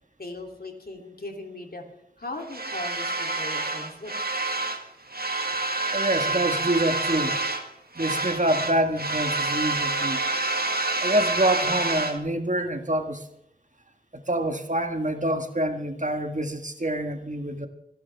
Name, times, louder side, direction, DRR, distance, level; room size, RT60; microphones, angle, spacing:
voice 1, 0.2-1.8 2.2-4.1, left 2 dB, 70° left, 2 dB, 3.0 m, -38 dB
sound 1, 2.5-4.8 5.1-7.7 7.9-12.2, right 2 dB, 70° right, 1.6 m, -28 dB
voice 2, 5.9-7.4 7.9-10.2 11.0-13.2 14.1-17.7, right 1 dB, 50° right, 6 dB, 1.6 m, -26 dB
28.5 x 11.5 x 3.5 m, 0.77 s
wide cardioid pair, 50°, 16 cm